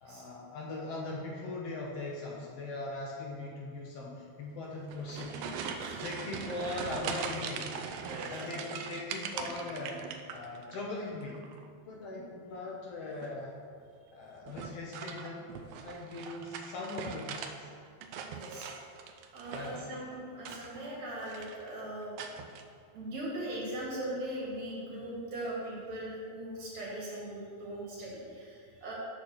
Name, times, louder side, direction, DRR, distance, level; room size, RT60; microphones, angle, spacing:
voice 1, 0.0-5.4 6.0-8.0 8.3-11.4 11.9-13.5 14.1-15.5 15.8-17.7 19.5-20.0, left 2 dB, 70° left, -2 dB, 1.6 m, -40 dB
sound 1, 4.8-10.8 11.1-11.7 13.1-13.5 14.5-17.5 17.9-19.9 20.4-21.0 21.2-21.7 22.2-22.6, right 6 dB, 85° right, 1.4 m, -41 dB
voice 2, 5.1-6.0 6.6-6.8 8.0-8.5 18.3-18.7 19.3-22.2 22.9-28.9, right 1 dB, 70° right, -6 dB, 3.1 m, -40 dB
7.1 x 4.3 x 6.4 m, 2.2 s
omnidirectional pair, 3.3 m